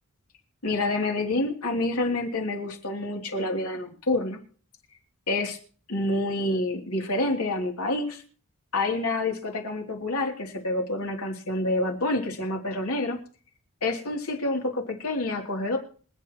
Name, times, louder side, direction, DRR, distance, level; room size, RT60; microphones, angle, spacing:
voice 1, 0.6-4.4 5.3-5.6 5.9-8.2 8.7-13.2 13.8-15.8, left 2 dB, 85° left, 1 dB, 3.2 m, -28 dB
26.5 x 8.9 x 3.1 m, 0.43 s
head